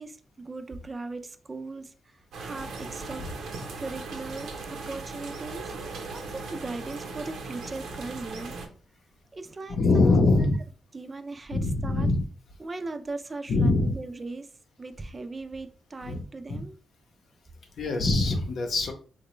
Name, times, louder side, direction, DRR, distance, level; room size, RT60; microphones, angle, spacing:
voice 1, 0.0-3.2 3.8-5.8 6.1-8.6 9.3-10.1 10.9-12.1 12.6-14.5 14.8-16.8, right 3 dB, 30° right, 0.3 m, -38 dB
sound 1, 2.3-8.7, right 3 dB, 90° right, 0.7 m, -38 dB
voice 2, 9.7-10.6 11.5-12.2 13.5-13.9 16.1-16.2 16.5-16.6 17.8-18.9, left 2 dB, 65° left, 0.6 m, -23 dB
3.9 x 2.1 x 3.0 m
cardioid pair, 105°, 0 cm